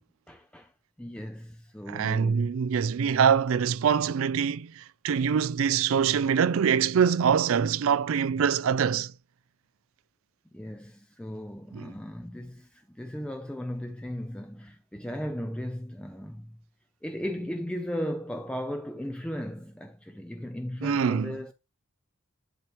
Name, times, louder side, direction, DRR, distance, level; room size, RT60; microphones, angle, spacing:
voice 1, 0.3-0.7 1.0-2.5 10.5-16.6 17.0-21.5, equal, 5° left, 0.4 m, -36 dB
voice 2, 1.9-9.1 11.7-11.8 20.8-21.3, right 7 dB, 65° right, 0.4 m, -24 dB
11.0 x 4.5 x 2.9 m
head